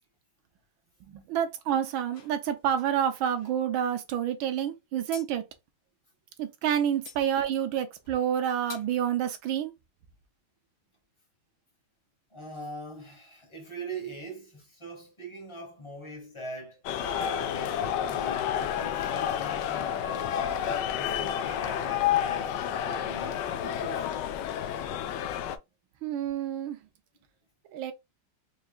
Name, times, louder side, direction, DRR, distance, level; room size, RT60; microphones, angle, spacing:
voice 1, 1.1-5.4 6.4-9.7 26.0-26.8 27.7-27.9, right 9 dB, 75° right, 1.5 m, -28 dB
sound 1, 2.1-3.5 5.1-5.3 6.9-7.2 8.0-8.2 8.7-8.9, left 5 dB, 50° left, 1.7 m, -47 dB
voice 2, 12.3-16.8 17.3-20.4 20.9-24.2, right 2 dB, 20° left, 1.0 m, -42 dB
sound 2, 16.8-25.6, left 10 dB, 75° left, 1.0 m, -30 dB
sound 3, 17.0-23.1, left 1 dB, 40° right, 2.1 m, -47 dB
4.7 x 3.2 x 2.4 m
omnidirectional pair, 2.3 m